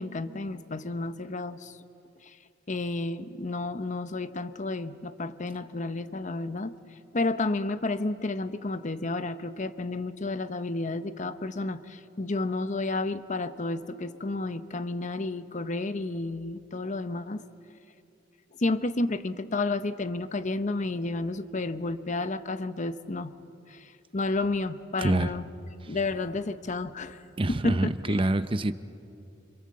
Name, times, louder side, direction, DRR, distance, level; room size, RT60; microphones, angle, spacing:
voice 1, 0.0-1.8 2.2-2.4 2.7-6.7 7.1-17.4 18.6-23.3 23.7-25.5 25.9-27.2 27.5-28.3, left 2 dB, 40° left, 11 dB, 0.8 m, -31 dB
voice 2, 25.0-25.3 27.4-28.7, right 2 dB, 30° right, 12 dB, 0.6 m, -26 dB
26.0 x 26.0 x 7.7 m, 2.6 s
head